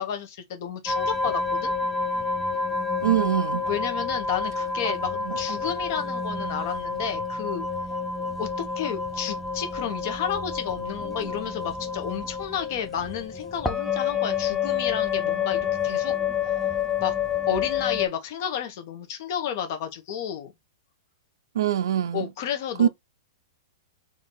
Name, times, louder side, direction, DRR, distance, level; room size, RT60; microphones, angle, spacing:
voice 1, 0.0-1.7 3.7-7.7 8.4-16.2 17.0-17.2 17.5-20.5 22.1-22.9, left 8 dB, 40° left, 1.0 m, -31 dB
sound 1, 0.9-18.1, left 5 dB, 5° left, 0.5 m, -28 dB
voice 2, 3.0-3.6 5.2-5.3 21.5-22.3 22.8-22.9, right 10 dB, 70° right, 0.4 m, -23 dB
3.8 x 2.7 x 3.9 m
supercardioid pair, 170°, 2 cm